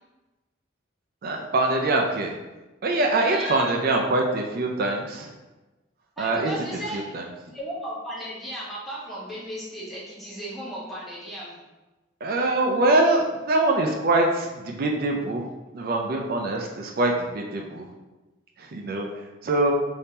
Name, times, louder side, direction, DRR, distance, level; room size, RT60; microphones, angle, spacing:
voice 1, 1.2-2.4 2.8-5.3 6.2-7.2 12.2-15.5 15.7-17.9 18.6-19.7, right 2 dB, 50° right, 1 dB, 0.4 m, -24 dB
voice 2, 3.3-3.6 6.2-7.1 7.5-11.6, equal, ahead, -8 dB, 0.9 m, -35 dB
3.5 x 2.7 x 2.8 m, 1.1 s
head